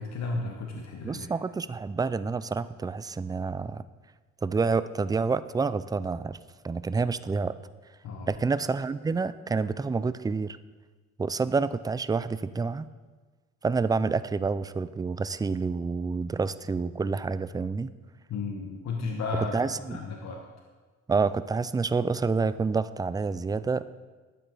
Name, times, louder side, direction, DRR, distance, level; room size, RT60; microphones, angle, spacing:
voice 1, 0.0-1.3 8.0-8.3 18.3-19.5 19.9-20.4, left 3 dB, 60° left, 1 dB, 1.3 m, -33 dB
voice 2, 1.0-3.8 4.4-6.4 6.6-7.5 8.3-10.6 11.2-12.9 13.6-17.9 19.5-20.0 21.1-23.8, right 4 dB, 15° right, 14 dB, 0.3 m, -28 dB
12.0 x 8.9 x 3.9 m, 1.4 s
cardioid pair, 90°, 30 cm